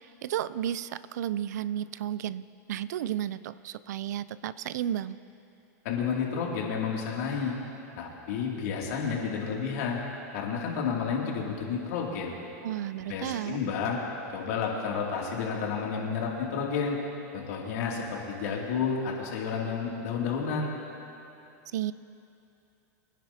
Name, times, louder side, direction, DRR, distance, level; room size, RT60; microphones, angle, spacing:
voice 1, 0.2-2.4 2.7-5.2 12.6-13.6 21.7-21.9, right 11 dB, 80° right, 17 dB, 0.4 m, -32 dB
voice 2, 5.8-7.5 8.0-10.0 10.3-12.3 13.1-14.0 14.3-17.0 17.3-20.7, left 6 dB, 65° left, -2 dB, 2.5 m, -31 dB
24.0 x 10.0 x 2.8 m, 2.8 s
supercardioid pair, 140°, 9 cm